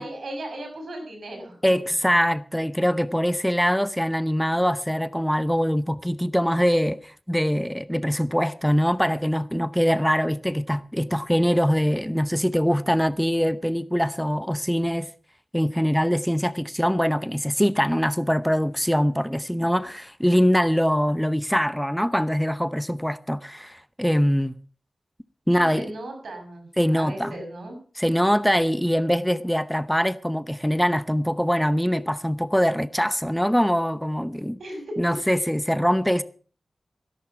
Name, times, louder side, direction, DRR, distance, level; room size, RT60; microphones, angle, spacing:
voice 1, 0.0-1.6 25.5-27.8 34.6-35.0, right 1 dB, 85° right, 6.1 m, -36 dB
voice 2, 1.6-15.1 15.5-24.6 25.5-25.9 26.8-27.4 28.0-34.6 35.0-36.2, equal, 5° left, 0.8 m, -23 dB
17.0 x 11.0 x 5.8 m
cardioid pair, 55°, 0 cm